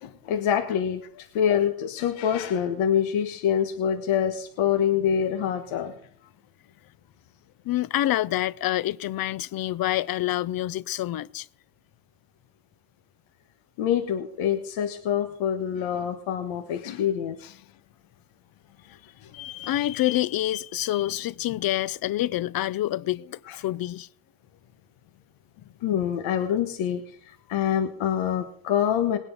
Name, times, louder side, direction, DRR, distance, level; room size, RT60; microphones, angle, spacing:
voice 1, 0.0-5.9 13.8-17.4 19.2-19.3 23.5-23.6 25.8-29.2, left 9 dB, 85° left, 1.4 m, -26 dB
voice 2, 7.7-11.5 17.4-17.5 19.3-24.1, left 14 dB, 50° left, 0.6 m, -27 dB
19.5 x 9.8 x 5.3 m
cardioid pair, 165°, 46 cm